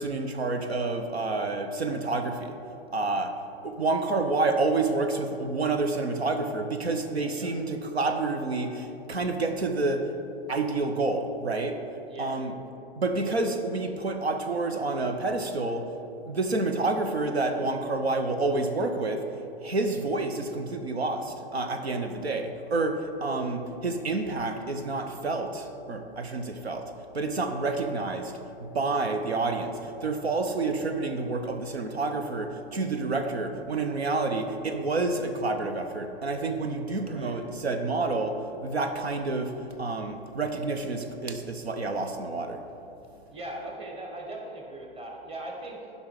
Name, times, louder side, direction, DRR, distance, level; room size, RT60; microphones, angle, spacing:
voice 1, 0.0-2.6 2.9-10.1 10.5-11.8 12.2-12.5 13.0-15.9 16.3-19.3 19.6-42.6, right 3 dB, 90° right, 6 dB, 0.8 m, -29 dB
voice 2, 37.0-37.4 43.3-45.9, right 1 dB, 20° right, 1 dB, 1.3 m, -40 dB
11.5 x 5.5 x 4.7 m, 2.8 s
hypercardioid pair, 110°, 31 cm